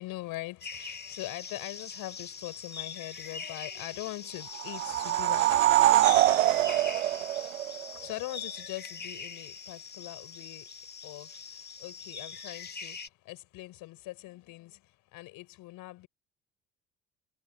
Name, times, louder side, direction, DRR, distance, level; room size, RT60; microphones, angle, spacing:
voice 1, 0.0-5.6 7.9-16.1, left 18 dB, 60° left, 4.4 m, -42 dB
sound 1, 0.6-13.1, left 5 dB, 25° left, 2.7 m, -43 dB
sound 2, 4.5-8.1, right 14 dB, 80° right, 0.6 m, -24 dB
figure-of-eight pair, 60°, 38 cm